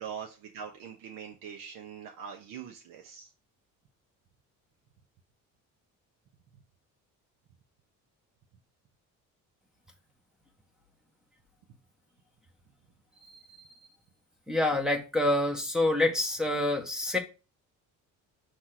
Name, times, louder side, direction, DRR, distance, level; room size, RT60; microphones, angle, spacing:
voice 1, 0.0-3.3, right 7 dB, 80° right, 2 dB, 1.1 m, -42 dB
voice 2, 14.5-17.2, left 2 dB, ahead, 5 dB, 0.8 m, -27 dB
6.2 x 3.3 x 5.8 m, 0.31 s
cardioid pair, 175°, 32 cm